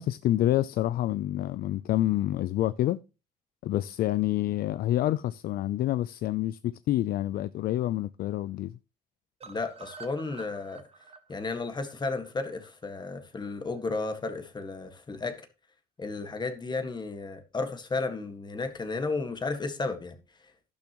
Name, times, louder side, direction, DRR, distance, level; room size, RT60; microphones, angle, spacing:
voice 1, 0.0-3.0 3.6-8.8, left 14 dB, 60° left, 0.5 m, -27 dB
voice 2, 9.4-10.8 11.3-15.5 16.0-20.2, left 3 dB, 25° left, 1.8 m, -33 dB
sound 1, 9.4-13.4 13.8-13.9 14.2-14.3 14.5-14.6, right 5 dB, 35° right, 1.4 m, -50 dB
12.0 x 10.5 x 3.0 m
cardioid pair, 110°, 17 cm